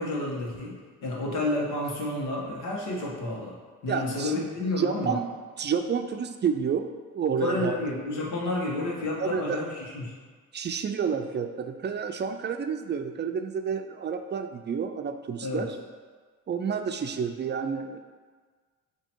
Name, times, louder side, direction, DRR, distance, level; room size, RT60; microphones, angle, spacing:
voice 1, 0.0-3.5 3.8-5.2 7.4-10.1 15.4-15.7, left 2 dB, 85° left, -3 dB, 1.4 m, -30 dB
voice 2, 3.9-4.4 4.8-5.3 5.6-7.8 9.2-9.6 10.5-15.8 16.5-18.0, right 6 dB, 35° right, 7 dB, 0.4 m, -30 dB
7.6 x 2.9 x 4.5 m, 1.5 s
cardioid pair, 90°, 30 cm